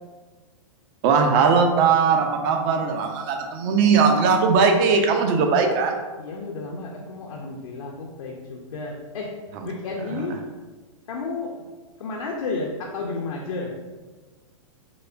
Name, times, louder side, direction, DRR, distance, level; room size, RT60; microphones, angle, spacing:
voice 1, 1.0-6.0 9.6-9.7, right 5 dB, 40° right, 4 dB, 0.5 m, -19 dB
voice 2, 6.2-9.3 9.6-10.4 11.1-11.5 12.0-13.7, left 3 dB, 75° left, -1 dB, 0.5 m, -32 dB
4.9 x 2.1 x 2.4 m, 1.3 s
hypercardioid pair, 115°, 17 cm